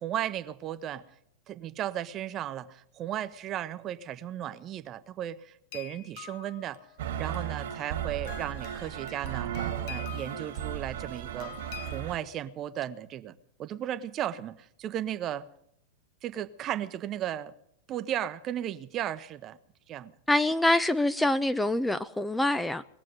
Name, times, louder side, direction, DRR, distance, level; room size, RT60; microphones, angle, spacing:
voice 1, 0.0-1.0 1.5-6.8 7.2-11.5 11.8-15.5 16.2-17.5 17.9-19.6 19.9-20.1, right 11 dB, 35° right, 0.9 m, -35 dB
sound 1, 5.7-12.2, left 12 dB, 55° left, 1.0 m, -47 dB
sound 2, 7.0-12.2, right 10 dB, 65° right, 1.9 m, -35 dB
voice 2, 20.3-22.8, left 1 dB, 5° left, 0.5 m, -25 dB
20.0 x 7.5 x 9.4 m
hypercardioid pair, 100°, 0 cm